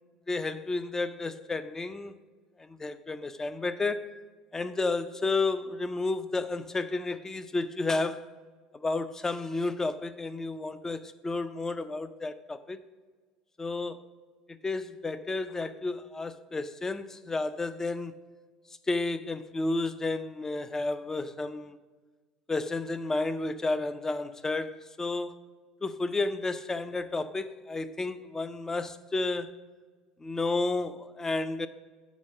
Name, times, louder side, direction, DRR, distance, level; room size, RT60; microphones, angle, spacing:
voice 1, 0.3-2.1 2.6-4.2 4.5-8.3 8.7-12.8 13.6-14.0 14.5-18.2 18.9-21.8 22.5-25.4 25.8-29.5 30.2-31.7, left 3 dB, 15° left, 0.5 m, -31 dB
7.2 x 4.4 x 6.4 m
hypercardioid pair, 80°, 3 cm